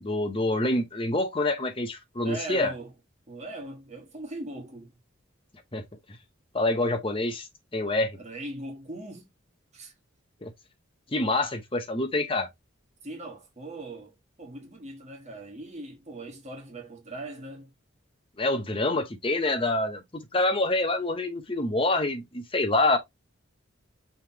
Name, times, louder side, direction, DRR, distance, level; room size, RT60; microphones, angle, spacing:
voice 1, 0.0-2.7 5.7-5.8 6.5-7.5 7.7-8.2 10.4-10.5 11.1-12.5 18.4-23.0, left 2 dB, 25° left, 0.8 m, -26 dB
voice 2, 2.2-2.9 3.3-4.9 8.1-9.3 9.7-9.9 13.0-17.7, right 2 dB, 35° right, 1.4 m, -40 dB
5.5 x 3.4 x 2.8 m
head